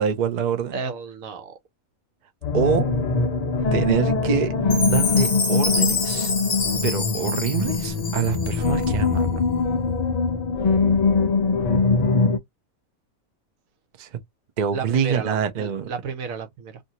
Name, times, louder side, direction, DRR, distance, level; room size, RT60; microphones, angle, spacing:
voice 1, 0.0-0.7 2.5-2.9 3.7-4.5 4.8-6.3 6.8-9.4 14.0-14.1 14.6-15.9, right 7 dB, 55° right, 0.5 m, -25 dB
voice 2, 0.7-1.5 4.6-5.3 14.7-16.8, right 5 dB, 75° right, 1.1 m, -33 dB
sound 1, 2.4-12.4, left 4 dB, 75° left, 0.3 m, -22 dB
Chime, 4.7-8.9, left 4 dB, 35° left, 0.8 m, -27 dB
2.7 x 2.6 x 2.7 m
omnidirectional pair, 1.5 m